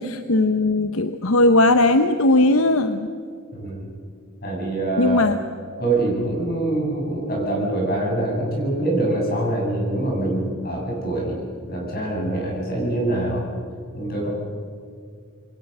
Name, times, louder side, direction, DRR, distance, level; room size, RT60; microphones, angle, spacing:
voice 1, 0.0-3.1 5.0-5.4, left 2 dB, 75° left, 9 dB, 0.9 m, -18 dB
voice 2, 3.5-3.9 4.4-5.2 5.8-11.4 11.7-13.5 13.9-14.3, right 2 dB, 45° left, -1 dB, 7.9 m, -24 dB
27.5 x 22.5 x 6.8 m, 2.2 s
head